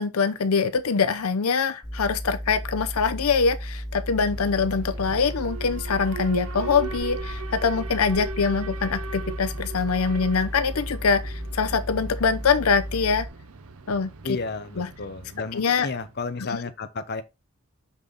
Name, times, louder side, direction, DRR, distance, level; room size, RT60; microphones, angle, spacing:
voice 1, 0.0-13.3 13.9-14.1 14.8-14.9 15.5-15.9, left 5 dB, 80° left, 0.6 m, -24 dB
sound 1, 1.8-13.3, equal, 20° left, 3.1 m, -34 dB
Alarm, 4.3-16.3, right 4 dB, 85° right, 0.8 m, -39 dB
voice 2, 14.2-17.2, left 3 dB, 50° left, 0.8 m, -32 dB
6.0 x 5.5 x 4.0 m
head